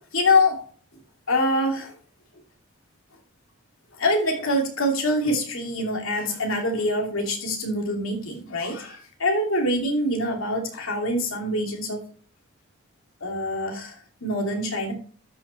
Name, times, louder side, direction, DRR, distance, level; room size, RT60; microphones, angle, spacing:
voice 1, 0.1-0.6 1.3-1.9 4.0-12.1 13.2-14.9, left 1 dB, 70° left, 1 dB, 2.5 m, -25 dB
13.0 x 5.8 x 3.2 m, 0.42 s
head